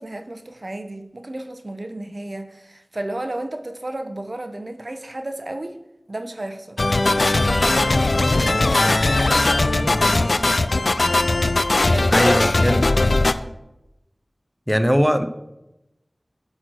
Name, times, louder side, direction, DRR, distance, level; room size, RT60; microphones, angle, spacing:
voice 1, 0.0-5.8 6.1-12.9, right 1 dB, 55° right, 0.7 m, -33 dB
sound 1, 6.8-13.3, left 2 dB, 75° left, 0.4 m, -19 dB
voice 2, 12.1-12.8 14.7-15.3, equal, ahead, 0.6 m, -19 dB
12.0 x 4.4 x 6.2 m
wide cardioid pair, 45°, 0 cm